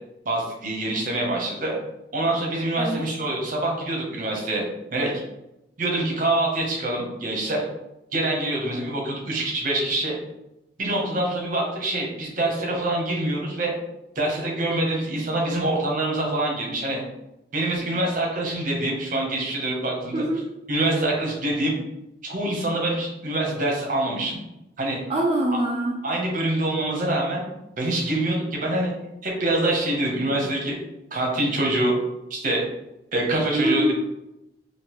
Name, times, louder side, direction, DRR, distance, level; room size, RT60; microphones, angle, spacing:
voice 1, 0.2-1.8 2.1-4.6 4.9-5.1 5.8-7.6 8.1-10.2 10.8-13.7 14.1-17.0 17.5-20.2 20.7-21.8 22.2-24.4 24.8-25.0 26.0-27.4 27.8-28.9 29.2-30.8 31.1-31.9 32.3-32.6 33.1-33.9, right 1 dB, 50° right, -1 dB, 1.0 m, -25 dB
voice 2, 2.8-3.1 20.1-20.6 25.1-26.0 33.5-33.9, right 1 dB, 30° right, -2 dB, 0.4 m, -24 dB
3.7 x 2.7 x 3.0 m, 0.90 s
head